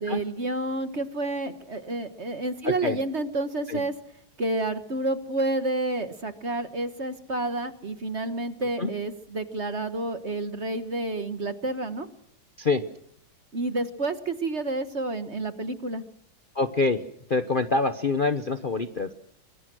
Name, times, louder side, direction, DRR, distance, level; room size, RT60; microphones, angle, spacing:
voice 1, 0.0-3.9 4.4-12.1 13.5-16.0, right 2 dB, 40° right, 10 dB, 1.5 m, -29 dB
voice 2, 2.6-3.0 3.7-3.8 8.8-8.9 12.6-12.8 16.5-17.0 17.3-19.1, left 3 dB, 35° left, 8 dB, 0.9 m, -25 dB
25.0 x 24.5 x 6.3 m, 0.70 s
omnidirectional pair, 2.1 m